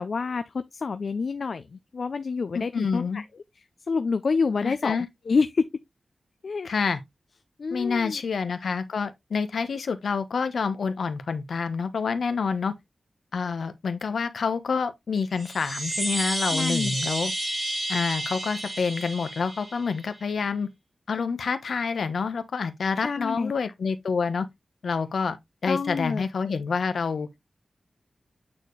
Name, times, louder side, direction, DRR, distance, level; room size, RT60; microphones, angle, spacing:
voice 1, 0.0-3.2 3.9-5.0 5.3-5.7 6.4-6.9 7.6-8.2 16.5-17.0 23.0-23.5 25.7-26.2, left 4 dB, 65° left, 0.5 m, -27 dB
voice 2, 2.5-3.2 4.6-5.1 6.6-7.0 7.7-12.7 13.3-17.3 17.9-20.7 21.1-24.5 24.8-25.4 25.6-27.3, left 5 dB, 90° left, 1.1 m, -27 dB
Chime, 15.3-20.0, right 1 dB, 35° right, 2.1 m, -31 dB
8.9 x 4.3 x 3.2 m
wide cardioid pair, 130°, 0 cm